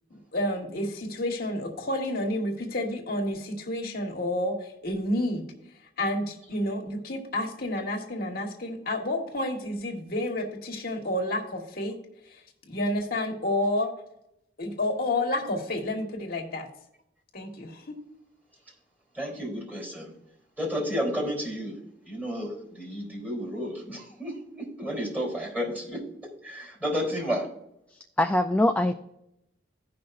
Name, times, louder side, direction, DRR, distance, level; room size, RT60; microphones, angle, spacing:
voice 1, 0.1-5.4 6.0-11.9 12.3-12.4 12.7-13.9 14.6-16.7 17.3-18.0, left 1 dB, 55° left, 1 dB, 1.6 m, -30 dB
voice 2, 19.1-20.1 20.6-21.8 22.0-27.5, equal, 10° right, -1 dB, 3.4 m, -32 dB
voice 3, 27.9-28.9, left 1 dB, 10° left, 6 dB, 0.3 m, -23 dB
16.5 x 5.6 x 2.5 m, 0.82 s
head